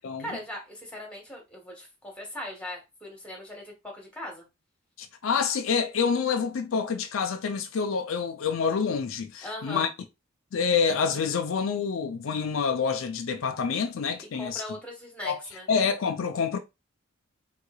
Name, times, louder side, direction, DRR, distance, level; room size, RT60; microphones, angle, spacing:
voice 1, 0.2-4.4 9.4-9.9 14.2-15.7, left 1 dB, 5° left, 1.2 m, -39 dB
voice 2, 5.0-9.9 10.5-14.6 15.2-15.4 15.7-16.6, left 6 dB, 80° left, 0.4 m, -27 dB
3.7 x 3.0 x 2.3 m
head